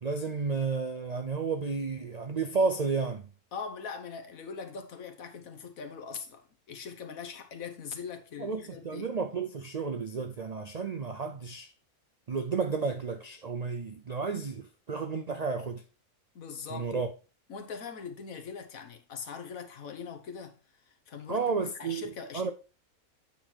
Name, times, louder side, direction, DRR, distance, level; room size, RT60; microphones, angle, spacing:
voice 1, 0.0-3.3 8.4-11.7 12.3-15.8 16.7-17.1 21.3-22.5, right 4 dB, 70° right, 0.3 m, -32 dB
voice 2, 3.5-9.1 16.3-17.0 17.5-20.5 20.8-22.5, left 6 dB, 65° left, 1.5 m, -41 dB
9.0 x 4.0 x 4.4 m
omnidirectional pair, 1.6 m